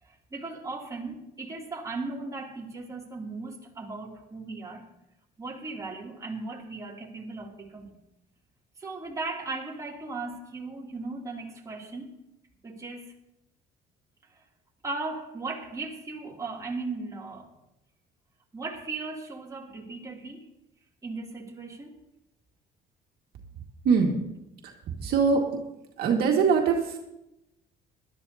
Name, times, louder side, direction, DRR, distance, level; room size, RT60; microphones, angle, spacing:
voice 1, 0.0-4.8 5.4-8.0 8.8-12.1 12.6-13.1 14.3-14.4 14.8-17.5 18.5-20.5 21.0-22.0, right 3 dB, 20° right, -3 dB, 2.9 m, -37 dB
voice 2, 23.8-24.2 24.6-25.6 26.0-27.0, right 5 dB, 70° right, 1 dB, 1.9 m, -23 dB
20.0 x 12.5 x 2.8 m, 0.88 s
cardioid pair, 110°, 17 cm